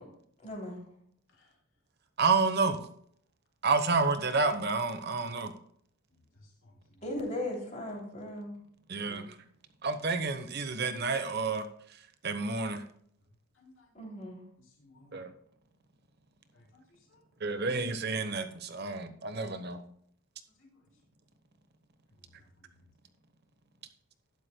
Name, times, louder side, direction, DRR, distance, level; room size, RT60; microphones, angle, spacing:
voice 1, 0.4-0.8 7.0-8.5 9.1-9.2 13.9-14.4, left 1 dB, 35° left, -1 dB, 3.0 m, -37 dB
voice 2, 2.2-2.8 3.6-5.5 8.9-9.4 9.8-11.7 12.2-12.8 15.1-15.3 17.4-19.8, right 4 dB, 50° right, 9 dB, 1.0 m, -29 dB
voice 3, 6.3-7.0 13.5-13.9 14.6-15.1 16.5-17.2 17.6-17.7 20.6-20.7 22.4-22.5, left 2 dB, 60° left, -1 dB, 3.2 m, -61 dB
12.5 x 11.0 x 2.3 m, 0.63 s
head